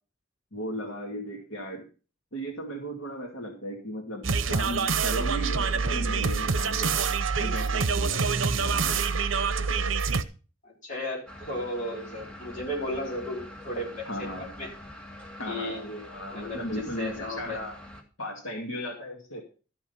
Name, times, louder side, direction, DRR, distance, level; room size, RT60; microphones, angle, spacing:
voice 1, 0.5-1.8 2.3-9.1 14.1-14.5 15.4-17.8 18.2-19.4, equal, 85° left, 1 dB, 2.3 m, -36 dB
sound 1, 4.2-10.2, right 5 dB, 70° right, 0.8 m, -26 dB
voice 2, 10.6-14.7 15.5-15.8 16.3-17.6, left 1 dB, 40° left, -2 dB, 4.4 m, -35 dB
sound 2, 11.3-18.0, left 1 dB, 5° left, 2.0 m, -45 dB
13.5 x 6.1 x 5.6 m, 0.36 s
head